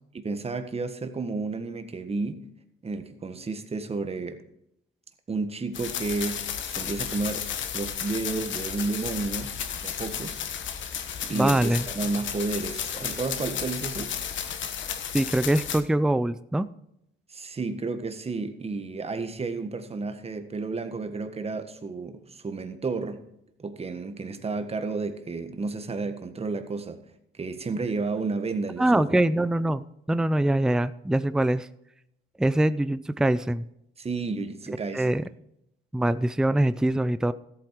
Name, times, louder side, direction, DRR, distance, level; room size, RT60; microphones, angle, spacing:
voice 1, 0.1-2.4 2.8-4.4 5.3-9.6 9.8-10.4 11.2-14.2 17.3-23.2 23.6-27.0 27.4-29.1 34.0-35.2, right 3 dB, 30° right, 8 dB, 1.6 m, -32 dB
sound 1, 5.7-15.8, left 8 dB, 70° left, 1.3 m, -33 dB
voice 2, 11.3-11.9 15.1-16.7 28.8-31.7 32.4-33.6 34.7-35.2 35.9-37.3, right 1 dB, 5° right, 14 dB, 0.4 m, -23 dB
13.5 x 8.7 x 4.7 m, 0.79 s
cardioid pair, 90°, 20 cm